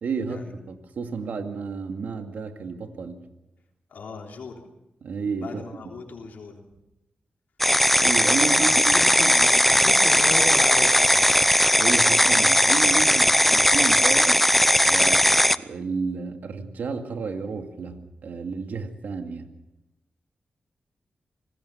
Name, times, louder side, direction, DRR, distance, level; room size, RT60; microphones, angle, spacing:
voice 1, 0.0-3.2 5.0-5.6 8.0-9.0 11.7-14.4 14.8-19.5, right 5 dB, 80° right, 5 dB, 2.3 m, -31 dB
voice 2, 3.9-4.6 5.4-6.6 8.4-11.4, left 3 dB, 80° left, 1 dB, 3.5 m, -36 dB
sound 1, 7.6-15.6, equal, 5° left, 0.8 m, -18 dB
26.5 x 19.0 x 5.8 m, 0.92 s
cardioid pair, 65°, 3 cm